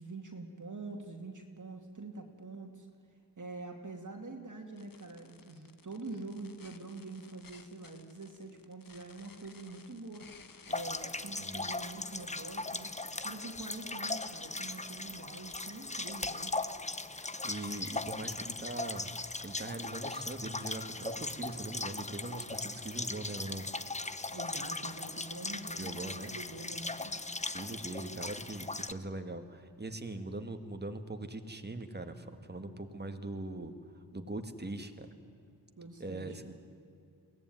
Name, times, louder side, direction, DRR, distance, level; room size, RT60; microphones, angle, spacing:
voice 1, 0.0-2.9 3.4-10.3 10.7-12.9 13.2-16.5 24.3-27.1 35.8-36.5, right 3 dB, 45° right, 3 dB, 2.5 m, -45 dB
sound 1, 4.8-12.7, left 5 dB, 55° left, 1.4 m, -58 dB
sound 2, 10.7-28.9, left 2 dB, 15° left, 0.9 m, -39 dB
voice 2, 17.2-19.1 19.4-23.7 25.8-26.3 27.5-35.1 36.0-36.4, right 2 dB, 25° right, 7 dB, 2.0 m, -41 dB
23.0 x 18.0 x 9.4 m, 2.5 s
wide cardioid pair, 75°, 40 cm